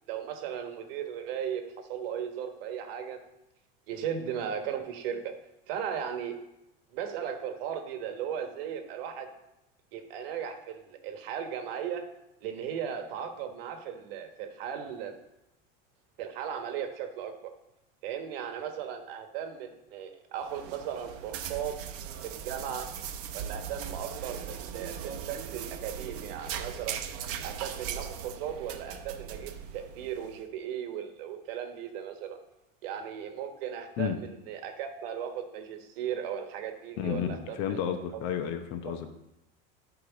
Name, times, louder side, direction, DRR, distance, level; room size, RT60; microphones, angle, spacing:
voice 1, 0.1-3.2 3.9-5.3 5.7-6.4 6.9-9.3 9.9-12.1 12.4-15.2 16.2-17.4 18.0-21.8 22.2-22.9 23.3-27.0 27.4-32.4 32.8-38.0 38.8-39.0, right 8 dB, 75° right, 6 dB, 1.3 m, -37 dB
sound 1, 20.4-30.4, right 8 dB, 50° right, 0.8 m, -39 dB
voice 2, 37.0-39.1, left 9 dB, 55° left, 7 dB, 0.9 m, -32 dB
11.0 x 4.9 x 4.0 m, 0.89 s
supercardioid pair, 120°, 29 cm